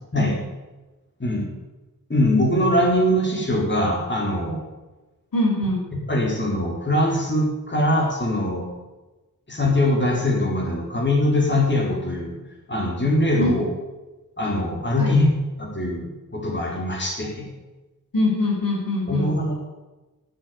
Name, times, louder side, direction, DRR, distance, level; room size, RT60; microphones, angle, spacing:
voice 1, 2.1-4.6 6.1-8.7 9.5-12.4 12.7-13.6 14.4-15.3 15.6-17.5 19.1-19.5, left 1 dB, 30° left, -2 dB, 4.6 m, -22 dB
voice 2, 5.3-5.8 13.4-13.5 15.0-15.1 18.1-19.3, left 1 dB, 70° left, -1 dB, 5.5 m, -23 dB
17.0 x 8.0 x 9.8 m, 1.1 s
wide cardioid pair, 70°, 35 cm